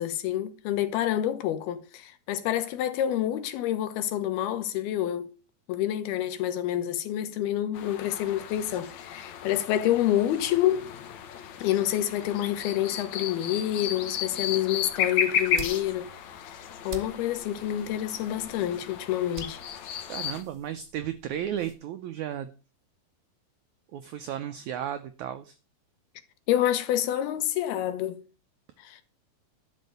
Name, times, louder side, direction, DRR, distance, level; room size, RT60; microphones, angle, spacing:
voice 1, 0.0-5.3 5.7-10.9 11.6-16.1 16.4-19.6 26.5-28.2 28.8-29.0, left 12 dB, 90° left, 3.1 m, -28 dB
sound 1, 7.7-20.4, left 8 dB, 65° left, 2.0 m, -34 dB
sound 2, 14.5-21.7, right 3 dB, 35° right, 1.0 m, -47 dB
voice 2, 20.0-22.5 23.9-25.6, right 10 dB, 85° right, 1.6 m, -34 dB
12.0 x 5.3 x 8.1 m
omnidirectional pair, 4.3 m